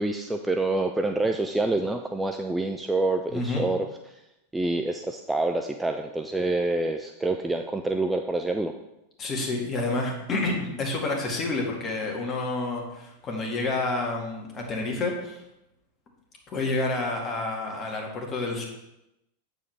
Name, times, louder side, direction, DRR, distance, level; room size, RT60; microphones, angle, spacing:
voice 1, 0.0-4.2 4.5-8.8, right 2 dB, 5° right, 5 dB, 0.4 m, -27 dB
voice 2, 3.3-3.6 9.2-15.4 16.5-18.6, left 2 dB, 25° left, 0 dB, 1.9 m, -29 dB
8.3 x 6.8 x 3.4 m, 0.89 s
figure-of-eight pair, 90°, 0 cm